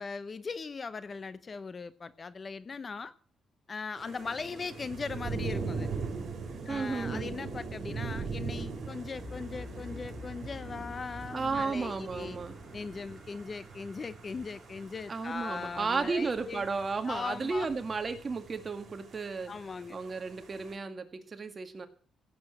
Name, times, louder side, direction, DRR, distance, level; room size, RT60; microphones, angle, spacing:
voice 1, 0.0-3.1 3.7-5.9 6.6-12.4 12.7-16.6 17.1-17.7 19.5-20.0, left 4 dB, 30° left, 0.6 m, -39 dB
sound 1, 4.0-20.7, right 4 dB, 50° right, 4.5 m, -41 dB
voice 2, 6.7-7.3 11.3-12.6 15.1-19.5 19.9-21.9, right 4 dB, 30° right, 1.9 m, -33 dB
sound 2, 9.1-17.1, left 3 dB, ahead, 5.3 m, -50 dB
16.5 x 8.1 x 7.7 m
cardioid pair, 125°, 0 cm